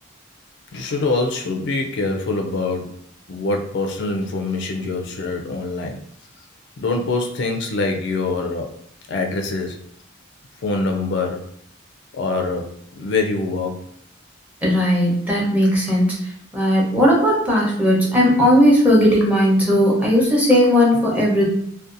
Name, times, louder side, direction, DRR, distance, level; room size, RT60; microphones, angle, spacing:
voice 1, 0.7-3.0 3.3-6.0 6.8-8.8 9.1-9.8 10.6-11.5 12.1-13.9, left 3 dB, 65° left, 3 dB, 0.3 m, -24 dB
voice 2, 14.6-16.1 16.5-21.4, equal, 10° right, -5 dB, 0.7 m, -16 dB
2.6 x 2.2 x 2.5 m, 0.70 s
head